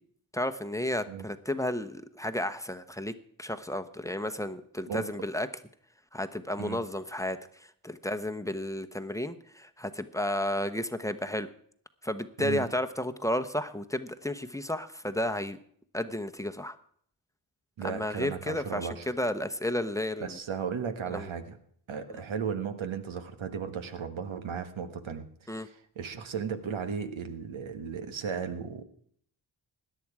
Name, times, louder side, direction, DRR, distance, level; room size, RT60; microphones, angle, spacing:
voice 1, 0.3-3.1 3.4-5.5 6.1-11.5 12.0-15.6 15.9-16.8 17.8-20.4 21.1-21.3 22.1-22.2 25.5-25.7, left 1 dB, 5° left, 8 dB, 1.0 m, -32 dB
voice 2, 17.8-19.1 20.2-21.6 21.9-28.8, right 6 dB, 75° right, 8 dB, 1.5 m, -35 dB
17.0 x 10.5 x 4.9 m, 0.62 s
cardioid pair, 50°, 48 cm